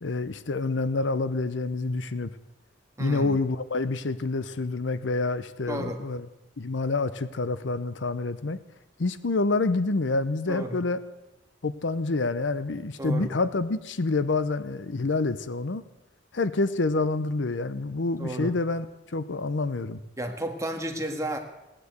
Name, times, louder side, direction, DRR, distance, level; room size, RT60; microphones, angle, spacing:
voice 1, 0.0-2.3 3.0-6.3 6.6-8.6 9.0-11.0 11.6-15.8 16.3-18.9 19.1-20.0, left 3 dB, 75° left, 14 dB, 0.8 m, -27 dB
voice 2, 3.0-3.4 5.7-6.0 10.5-10.8 13.0-13.3 18.2-18.5 20.2-21.4, right 1 dB, 15° right, 4 dB, 1.7 m, -32 dB
17.0 x 10.0 x 8.1 m, 0.99 s
head